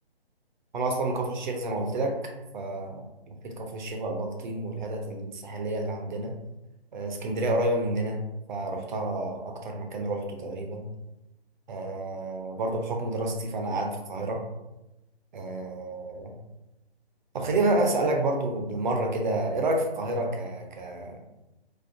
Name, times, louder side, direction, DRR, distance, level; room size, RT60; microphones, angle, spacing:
voice 1, 0.7-6.3 6.9-8.2 8.5-10.8 11.7-14.4 15.3-16.3 17.3-21.2, right 2 dB, 50° right, 2 dB, 0.5 m, -29 dB
2.4 x 2.2 x 2.5 m, 0.96 s
hypercardioid pair, 150°, 31 cm